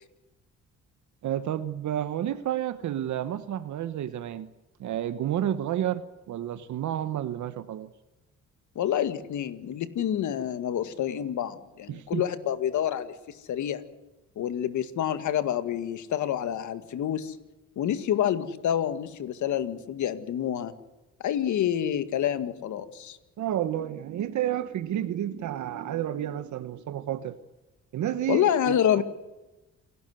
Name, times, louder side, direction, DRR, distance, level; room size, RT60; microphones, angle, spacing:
voice 1, 1.2-4.5 4.8-7.9 11.9-12.2 23.4-27.4 27.9-29.0, right 11 dB, 70° right, 12 dB, 1.2 m, -30 dB
voice 2, 8.8-13.8 14.4-17.4 17.8-20.7 21.2-23.2 28.3-29.0, left 10 dB, 75° left, 11 dB, 1.9 m, -28 dB
28.5 x 12.0 x 9.5 m, 1.1 s
cardioid pair, 90°, 30 cm